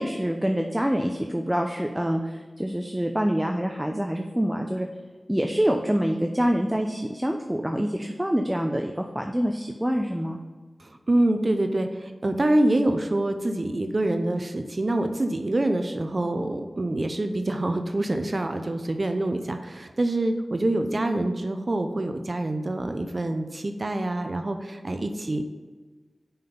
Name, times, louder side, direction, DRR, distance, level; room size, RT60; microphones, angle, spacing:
voice 1, 0.0-4.9 5.3-10.4, equal, 10° right, 3 dB, 0.6 m, -26 dB
voice 2, 10.8-25.4, right 1 dB, 45° right, 6 dB, 0.6 m, -26 dB
5.7 x 5.6 x 6.9 m, 1.3 s
wide cardioid pair, 65°, 0 cm